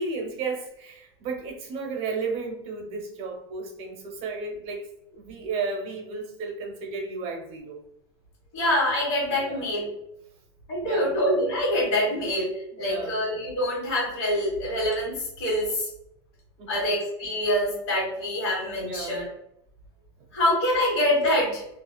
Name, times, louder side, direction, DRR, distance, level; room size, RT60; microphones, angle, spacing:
voice 1, 0.0-4.9 5.1-7.8 9.4-9.6 10.8-11.1 12.8-13.1 16.6-16.9 18.8-19.2, right 4 dB, 45° right, 2 dB, 0.7 m, -33 dB
voice 2, 8.5-9.9 10.7-12.5 12.8-15.9 16.7-19.3 20.3-21.6, left 1 dB, 80° left, -5 dB, 1.4 m, -25 dB
2.7 x 2.5 x 2.2 m, 0.80 s
supercardioid pair, 140°, 15 cm